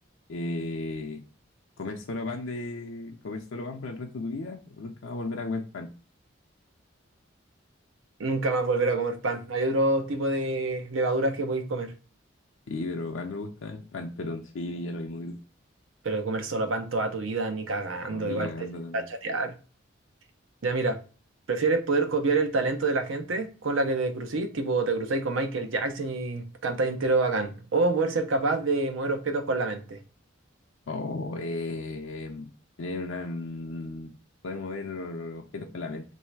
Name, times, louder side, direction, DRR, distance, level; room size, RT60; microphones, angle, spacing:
voice 1, 0.3-1.2 1.8-5.9 12.7-15.4 18.1-19.1 30.9-32.5 32.8-34.1 34.4-36.0, left 2 dB, 80° left, 0.5 m, -35 dB
voice 2, 8.2-11.9 16.0-18.5 18.9-19.5 20.6-21.0 21.5-30.0, right 3 dB, 80° right, 0.6 m, -27 dB
3.1 x 2.7 x 4.5 m
head